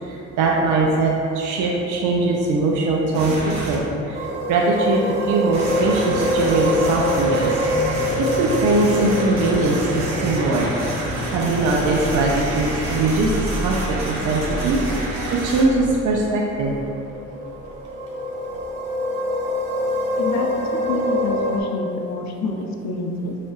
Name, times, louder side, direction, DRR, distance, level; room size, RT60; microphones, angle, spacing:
voice 1, 0.0-7.5 8.2-14.8 15.3-16.7, right 3 dB, 80° right, -2 dB, 0.5 m, -21 dB
sound 1, 3.1-3.7 5.5-15.6, right 1 dB, 65° right, 1.0 m, -29 dB
sound 2, 4.1-21.6, left 1 dB, 35° right, 0.8 m, -26 dB
sound 3, 7.7-13.3, left 5 dB, 20° left, 0.7 m, -36 dB
voice 2, 20.2-23.4, left 2 dB, 65° left, 2 dB, 0.6 m, -27 dB
5.2 x 3.4 x 2.4 m, 2.8 s
cardioid pair, 90°, 30 cm